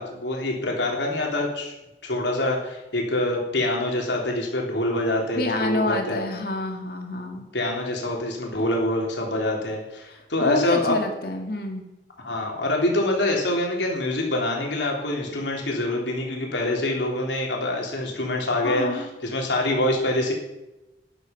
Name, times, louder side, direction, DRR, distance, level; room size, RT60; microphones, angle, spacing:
voice 1, 0.0-1.7 2.0-6.2 7.5-11.0 12.2-20.3, left 1 dB, 90° left, -1 dB, 3.7 m, -25 dB
voice 2, 5.4-7.4 10.1-11.8 18.6-19.1, left 2 dB, 55° left, 3 dB, 2.3 m, -27 dB
13.0 x 11.0 x 5.4 m, 0.99 s
head